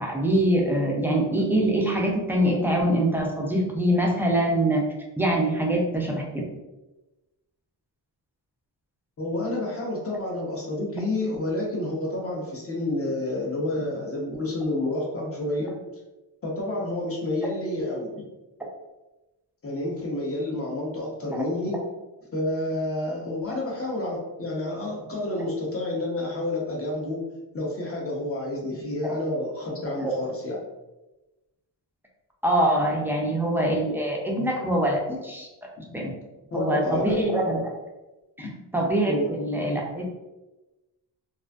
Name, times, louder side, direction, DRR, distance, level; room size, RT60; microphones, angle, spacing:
voice 1, 0.0-4.8 5.2-6.4 21.3-21.5 29.0-29.1 30.0-30.2 32.4-35.5 35.9-36.1 36.5-37.7 38.4-38.5 38.7-40.1, right 1 dB, 5° right, -2 dB, 0.3 m, -24 dB
voice 2, 9.2-15.8 16.4-18.2 19.6-21.8 22.3-27.2 27.5-30.6 35.8-35.9 36.5-37.3 38.4-38.6 39.1-39.3, left 1 dB, 35° left, -3 dB, 0.7 m, -29 dB
2.5 x 2.3 x 2.2 m, 1.1 s
wide cardioid pair, 115°, 42 cm